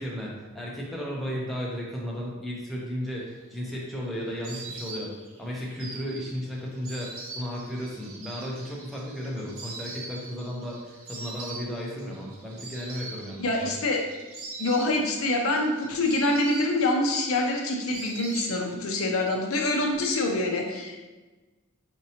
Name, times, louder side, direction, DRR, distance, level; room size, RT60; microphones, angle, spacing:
voice 1, 0.0-5.1 5.4-13.7, equal, ahead, -5 dB, 0.6 m, -34 dB
Insect, 3.3-19.0 19.3-20.1, right 3 dB, 75° right, 0.7 m, -43 dB
voice 2, 13.4-14.0 14.6-21.0, left 2 dB, 80° left, 1 dB, 0.6 m, -25 dB
5.1 x 2.8 x 2.8 m, 1.2 s
head